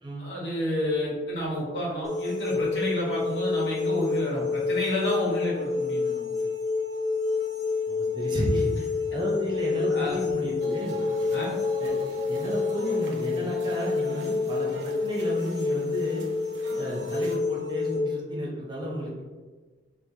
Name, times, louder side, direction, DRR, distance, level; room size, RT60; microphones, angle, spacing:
voice 1, 0.2-6.3 9.8-10.1 11.3-11.5, equal, 70° left, -5 dB, 1.1 m, -30 dB
sound 1, 2.0-18.0, left 4 dB, 20° left, 0.8 m, -28 dB
voice 2, 7.9-8.7 9.1-11.0 11.8-12.0 12.3-16.3 16.8-19.2, equal, 25° right, -3 dB, 0.6 m, -32 dB
sound 2, 10.6-17.4, right 3 dB, 90° right, 0.4 m, -40 dB
4.5 x 2.0 x 2.6 m, 1.4 s
head